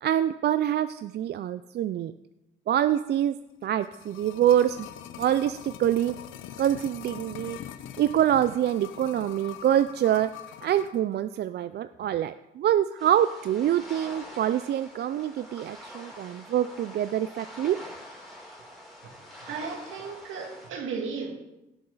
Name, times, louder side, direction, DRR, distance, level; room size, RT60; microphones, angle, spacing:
voice 1, 0.0-2.1 2.7-3.4 3.6-4.9 5.2-6.2 6.6-7.6 8.0-10.3 10.6-17.8, right 11 dB, 55° right, 12 dB, 0.4 m, -25 dB
sound 1, 3.6-11.0 11.3-11.4, left 11 dB, 85° left, 0.7 m, -43 dB
sound 2, 13.0-20.7, left 1 dB, ahead, 3.6 m, -45 dB
voice 2, 19.4-21.3, right 5 dB, 80° right, 2 dB, 2.1 m, -35 dB
17.0 x 6.3 x 4.0 m, 0.94 s
cardioid pair, 90°, 20 cm